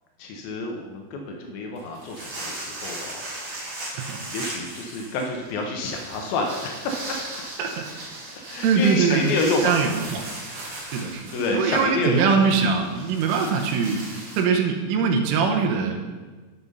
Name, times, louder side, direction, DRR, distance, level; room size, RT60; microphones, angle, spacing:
voice 1, 0.2-3.2 4.3-7.0 8.5-9.8 11.3-12.3, left 2 dB, 90° left, 1 dB, 2.0 m, -28 dB
sound 1, 1.8-14.4, right 2 dB, 50° right, 1.8 m, -37 dB
voice 2, 3.9-4.5 7.6-7.8 8.6-9.3 9.6-10.3 10.9-11.2 11.5-14.0 14.3-16.0, right 5 dB, 90° right, 2 dB, 3.5 m, -22 dB
11.0 x 6.6 x 5.5 m, 1.3 s
omnidirectional pair, 5.6 m